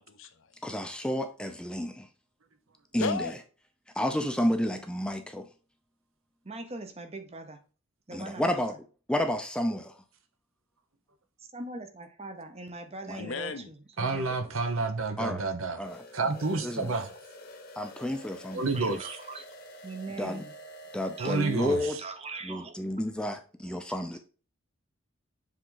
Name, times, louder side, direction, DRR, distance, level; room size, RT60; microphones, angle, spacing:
voice 1, 0.0-0.6 3.0-3.4 13.2-13.7 21.4-22.0, left 4 dB, 65° left, 0.6 m, -35 dB
voice 2, 0.6-2.1 2.9-3.2 4.0-5.5 8.1-8.7 9.1-9.9 13.1-13.2 14.0-14.2 15.2-15.4 15.8-16.0 16.6-16.9 17.8-18.6 18.9-19.0 20.2-20.4 20.9-22.0 22.4-24.2, left 1 dB, 5° left, 0.5 m, -31 dB
voice 3, 6.4-7.6 8.1-8.5 11.4-14.3 16.2-16.4 18.7-19.4 19.8-20.6 21.2-21.4 22.0-23.0 23.6-23.8, right 3 dB, 30° right, 0.8 m, -41 dB
voice 4, 14.0-15.8 16.1-17.2 18.5-19.1 21.2-22.0, right 3 dB, 70° right, 0.9 m, -30 dB
sound 1, 15.8-22.0, equal, 45° left, 1.0 m, -47 dB
7.5 x 3.6 x 3.9 m
head